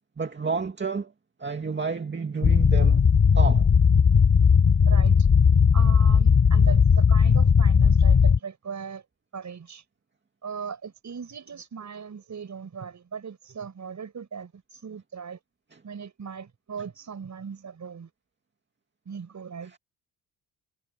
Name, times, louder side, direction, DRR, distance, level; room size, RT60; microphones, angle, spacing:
voice 1, 0.2-1.1 1.4-3.0 3.3-3.7 15.7-15.8 19.7-19.8, right 4 dB, 30° right, 2.2 m, -30 dB
sound 1, 2.4-8.4, left 6 dB, 45° left, 3.4 m, -17 dB
voice 2, 4.9-5.3 5.7-9.0 9.3-9.8 10.4-15.4 15.8-18.1 19.0-19.7, right 6 dB, 45° right, 6.3 m, -38 dB
cardioid pair, 90°, 39 cm